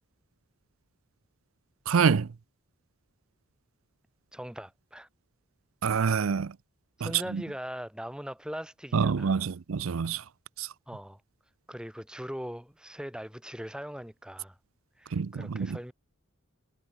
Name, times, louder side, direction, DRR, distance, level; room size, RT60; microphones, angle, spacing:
voice 1, 1.9-2.3 5.8-6.6 7.0-7.4 8.9-10.2 10.6-10.7 15.1-15.8, right 6 dB, 80° right, 0.5 m, -27 dB
voice 2, 4.3-5.1 7.0-9.5 10.9-11.2 11.7-14.6 15.0-15.9, equal, 5° right, 2.6 m, -40 dB
head